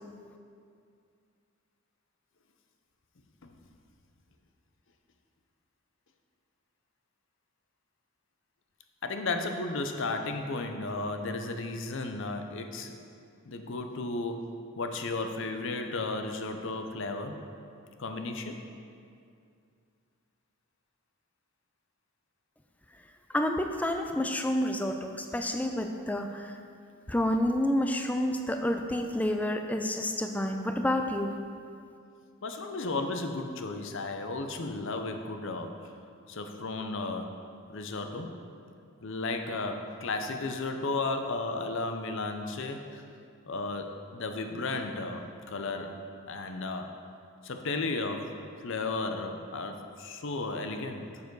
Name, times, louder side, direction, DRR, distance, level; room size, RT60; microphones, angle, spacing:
voice 1, 9.0-13.0 13.4-17.4 18.0-18.6 32.4-35.8 36.3-37.4 37.7-38.4 39.0-43.0 43.4-45.9 46.3-46.9 47.4-51.2, left 3 dB, 55° left, 5 dB, 0.6 m, -34 dB
voice 2, 23.3-26.6 27.1-31.4, left 1 dB, 5° left, 5 dB, 0.3 m, -29 dB
7.0 x 6.9 x 4.7 m, 2.4 s
head